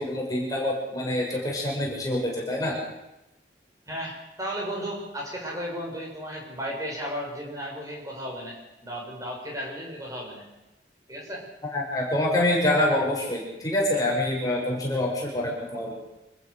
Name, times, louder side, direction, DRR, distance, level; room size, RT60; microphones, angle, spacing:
voice 1, 0.0-2.8 11.7-16.1, left 1 dB, 20° left, -3 dB, 6.8 m, -26 dB
voice 2, 3.9-10.4 11.1-11.4, equal, 20° right, -2 dB, 7.2 m, -34 dB
26.5 x 14.5 x 6.7 m, 0.95 s
head